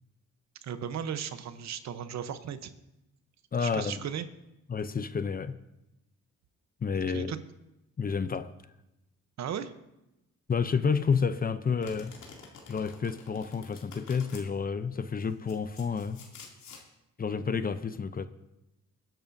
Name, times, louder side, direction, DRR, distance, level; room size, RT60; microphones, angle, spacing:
voice 1, 0.6-2.7 3.6-4.3 6.9-7.4 9.4-9.7, right 8 dB, 65° right, 1.0 m, -36 dB
voice 2, 3.5-4.0 4.7-5.5 6.8-7.3 8.0-8.5 10.5-12.1 12.7-16.2 17.2-18.3, left 5 dB, 30° left, 0.6 m, -30 dB
Domestic sounds home sounds, 11.8-14.4 15.2-16.8, left 5 dB, 70° left, 2.8 m, -49 dB
22.5 x 10.5 x 2.7 m
cardioid pair, 90°, 30 cm